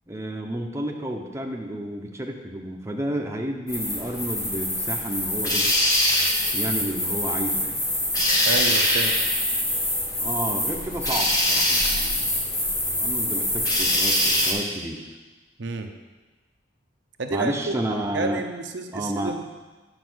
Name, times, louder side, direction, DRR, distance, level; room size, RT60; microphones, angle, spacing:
voice 1, 0.1-5.7 6.5-7.8 10.2-12.3 13.0-15.2 17.3-18.4 18.9-19.4, right 1 dB, 15° right, 1 dB, 0.8 m, -31 dB
sound 1, 3.7-14.5, left 1 dB, 20° left, 1.6 m, -24 dB
voice 2, 8.4-9.2 15.6-15.9 17.2-17.8 18.1-19.4, right 3 dB, 75° right, 5 dB, 0.7 m, -30 dB
9.2 x 4.9 x 6.3 m, 1.2 s
head